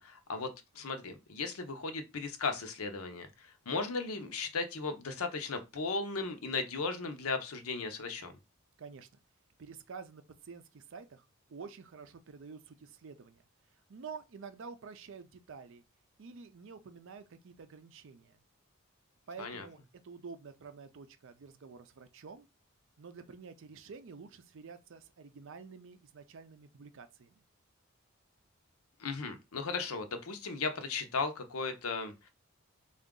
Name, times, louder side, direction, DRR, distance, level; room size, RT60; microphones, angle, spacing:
voice 1, 0.0-8.3 19.4-19.7 29.0-32.3, left 4 dB, 80° left, 0.7 m, -36 dB
voice 2, 8.8-9.1 9.6-13.4 13.9-15.8 16.2-18.4 19.3-19.8 20.0-22.5 23.0-27.4, right 5 dB, 60° right, 0.5 m, -49 dB
3.8 x 2.4 x 3.6 m
head